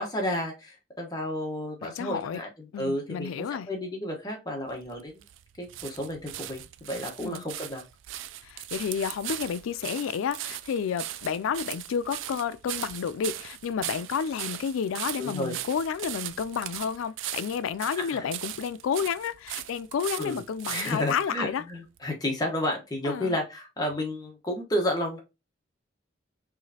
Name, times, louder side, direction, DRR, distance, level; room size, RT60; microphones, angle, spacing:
voice 1, 0.0-2.5 2.8-3.3 3.7-5.2 5.6-7.8 15.2-15.6 18.0-18.3 20.2-20.4 20.7-25.2, left 1 dB, 20° left, 1.0 m, -31 dB
voice 2, 1.8-2.4 2.7-3.7 7.2-7.4 8.4-21.6 23.0-23.4, left 7 dB, 85° left, 0.3 m, -31 dB
sound 1, 4.7-21.3 22.0-22.1, right 13 dB, 75° right, 0.3 m, -39 dB
4.8 x 3.2 x 2.7 m
head